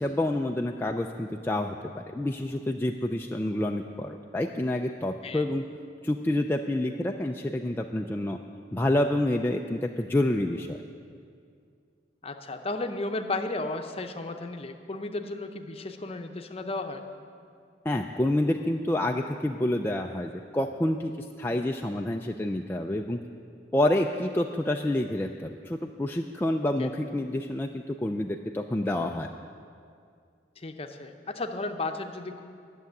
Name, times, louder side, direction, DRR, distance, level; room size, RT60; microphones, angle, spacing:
voice 1, 0.0-5.6 6.0-8.4 8.7-10.8 17.9-23.2 23.7-29.3, left 1 dB, 10° left, 2 dB, 0.3 m, -28 dB
voice 2, 12.2-17.1 26.6-26.9 30.6-32.4, left 2 dB, 35° left, 6 dB, 0.8 m, -34 dB
11.5 x 7.1 x 9.4 m, 2.3 s
head